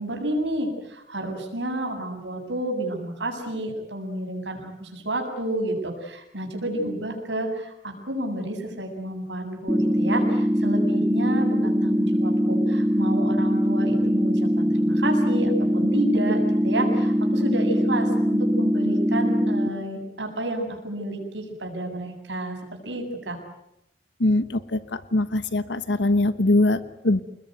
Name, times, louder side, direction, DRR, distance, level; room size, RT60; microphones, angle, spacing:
voice 1, 0.0-23.4, right 1 dB, 80° right, 3 dB, 7.9 m, -30 dB
sound 1, 9.7-19.7, equal, 5° right, 2.0 m, -22 dB
voice 2, 24.2-27.2, left 2 dB, 75° left, 13 dB, 1.2 m, -22 dB
29.5 x 21.0 x 9.4 m, 0.82 s
head